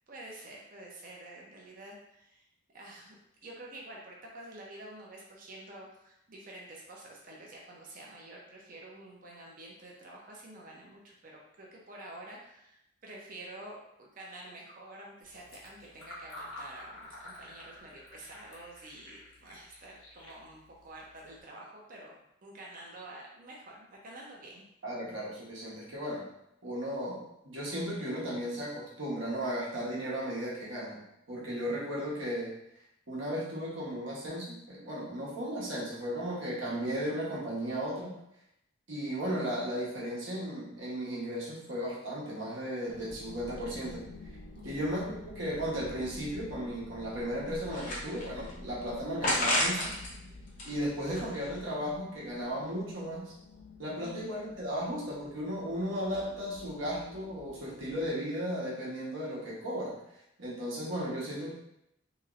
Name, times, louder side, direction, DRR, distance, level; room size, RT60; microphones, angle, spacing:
voice 1, 0.1-2.4 2.7-3.2 3.4-22.1 22.4-24.6 44.5-45.0 54.0-54.3, right 1 dB, 45° right, -2 dB, 0.6 m, -48 dB
Fill (with liquid), 15.2-21.4, left 1 dB, 80° left, 1.2 m, -50 dB
voice 2, 24.8-26.3 26.6-31.0 31.3-32.5 33.1-38.1 38.9-44.0 44.6-49.9 50.6-53.3 53.8-59.9 60.4-61.5, equal, 75° right, -6 dB, 1.0 m, -35 dB
sound 1, 42.9-58.1, left 2 dB, 60° left, 0.3 m, -50 dB
sound 2, 46.5-46.6 47.2-48.5 49.2-50.1 50.5-51.7, left 1 dB, 40° left, 0.7 m, -32 dB
3.0 x 3.0 x 2.4 m, 0.80 s
head